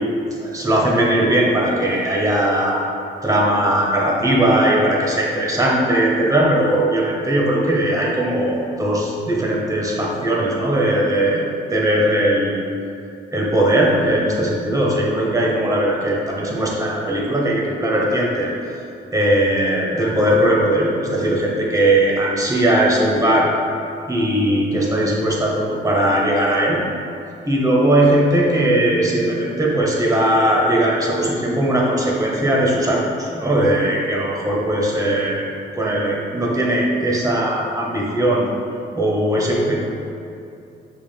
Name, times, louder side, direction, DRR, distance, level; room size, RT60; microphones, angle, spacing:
voice 1, 0.0-2.8 3.2-12.6 13.3-18.5 19.1-23.5 24.1-26.8 27.5-35.5 35.8-38.5 38.9-39.8, right 1 dB, 15° right, -3 dB, 0.9 m, -19 dB
6.1 x 3.5 x 2.3 m, 2.6 s
cardioid pair, 90°, 20 cm